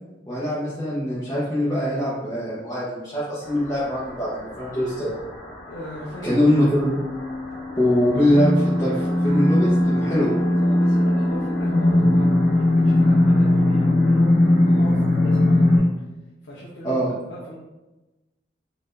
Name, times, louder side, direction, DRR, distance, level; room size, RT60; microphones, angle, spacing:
voice 1, 0.3-5.2 6.2-7.0 7.8-10.4 16.8-17.1, left 1 dB, 20° left, -10 dB, 0.8 m, -22 dB
sound 1, 3.4-15.8, left 1 dB, 45° left, 1.1 m, -21 dB
voice 2, 5.6-6.4 10.0-15.9 16.4-17.6, equal, 90° left, -5 dB, 0.7 m, -39 dB
4.3 x 2.6 x 3.1 m, 1.1 s
head